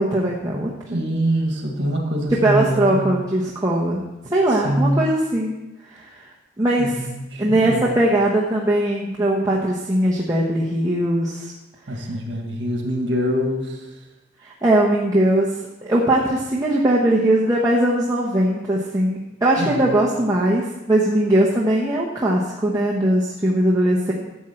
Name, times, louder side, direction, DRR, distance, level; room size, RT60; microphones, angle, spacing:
voice 1, 0.0-0.7 2.3-4.0 4.3-5.5 5.9-6.3 6.6-7.0 7.4-11.5 14.4-15.6 15.8-24.1, right 1 dB, 15° right, -4 dB, 0.9 m, -20 dB
voice 2, 0.9-3.1 4.6-5.0 6.8-7.8 11.9-13.9 19.6-20.0, equal, 65° right, 1 dB, 1.7 m, -24 dB
12.0 x 7.7 x 4.3 m, 1.0 s
head